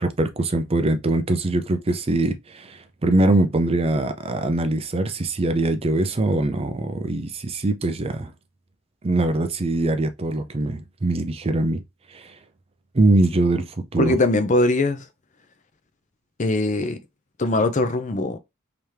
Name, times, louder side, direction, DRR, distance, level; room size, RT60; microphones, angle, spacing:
voice 1, 0.0-8.3 9.0-11.8 12.1-12.4 12.9-14.2, right 2 dB, 25° right, 0.4 m, -22 dB
voice 2, 14.0-15.1 16.4-17.0 17.4-18.4, left 2 dB, 35° left, 0.5 m, -21 dB
3.5 x 2.9 x 3.2 m
head